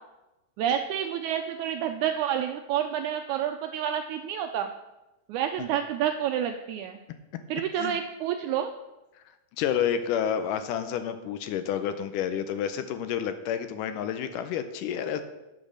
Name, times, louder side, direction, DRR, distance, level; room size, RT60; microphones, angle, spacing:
voice 1, 0.6-4.7 5.3-7.0 7.5-8.7, right 9 dB, 85° right, 6 dB, 1.7 m, -29 dB
voice 2, 9.6-15.2, left 9 dB, 80° left, 10 dB, 2.1 m, -29 dB
8.9 x 6.1 x 6.4 m, 1.0 s
omnidirectional pair, 3.9 m